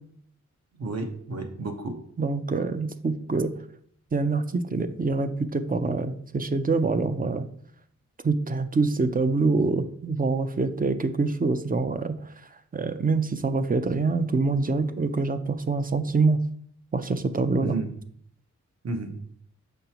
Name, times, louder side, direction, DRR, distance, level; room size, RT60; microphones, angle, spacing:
voice 1, 0.8-1.9 17.6-17.9 18.8-19.1, right 3 dB, 60° right, 5 dB, 1.1 m, -31 dB
voice 2, 2.2-3.5 4.1-7.5 8.2-12.3 12.7-16.4 16.9-17.8, right 3 dB, 30° right, 10 dB, 0.5 m, -25 dB
6.8 x 5.2 x 2.9 m, 0.64 s
wide cardioid pair, 90°, 29 cm